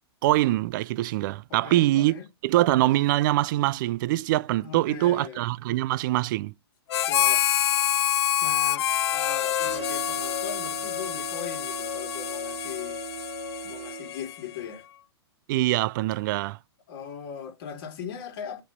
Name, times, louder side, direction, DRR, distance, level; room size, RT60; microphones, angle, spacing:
voice 1, 0.2-6.5 15.5-16.6, right 16 dB, 50° right, 0.4 m, -24 dB
voice 2, 1.5-2.3 4.6-5.4 7.1-7.5 8.4-13.0 13.6-14.8 16.9-18.6, left 8 dB, 55° left, 2.6 m, -39 dB
Harmonica, 6.9-14.6, left 11 dB, 70° left, 0.5 m, -27 dB
sound 1, 9.6-14.4, right 12 dB, 80° right, 0.7 m, -40 dB
8.4 x 3.1 x 5.3 m
hypercardioid pair, 135°, 14 cm